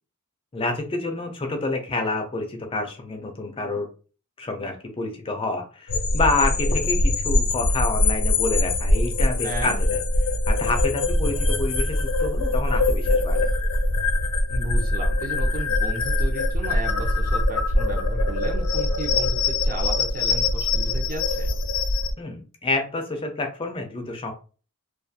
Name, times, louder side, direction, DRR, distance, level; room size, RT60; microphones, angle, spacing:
voice 1, 0.5-3.9 4.4-10.0 10.5-13.5 22.2-24.3, left 2 dB, 25° left, 4 dB, 0.4 m, -28 dB
sound 1, 5.9-22.1, left 2 dB, 90° left, 0.5 m, -23 dB
voice 2, 9.4-9.7 14.5-21.5, right 2 dB, 40° right, 2 dB, 0.6 m, -34 dB
2.3 x 2.3 x 2.6 m, 0.36 s
head